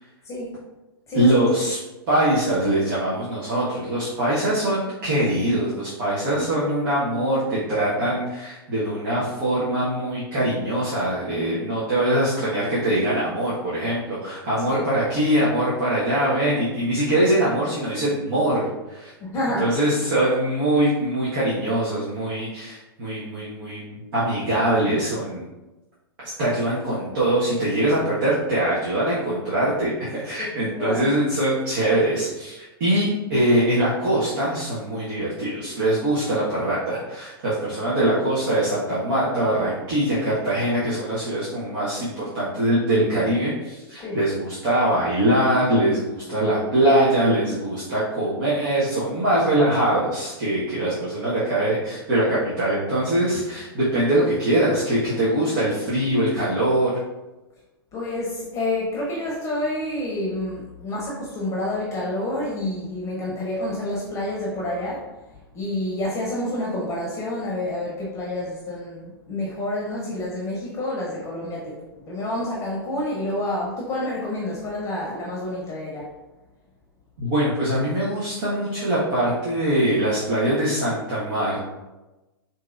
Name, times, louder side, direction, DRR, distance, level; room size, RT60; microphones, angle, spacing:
voice 1, 1.1-1.8 2.1-19.1 19.6-25.5 26.2-56.9 77.2-81.7, right 1 dB, 55° right, -8 dB, 1.2 m, -22 dB
voice 2, 19.2-19.7 30.4-30.5 30.8-31.0 44.0-44.2 57.9-65.0 65.5-76.1, left 1 dB, 20° left, -4 dB, 0.8 m, -28 dB
4.5 x 2.8 x 2.5 m, 1.1 s
hypercardioid pair, 105°, 13 cm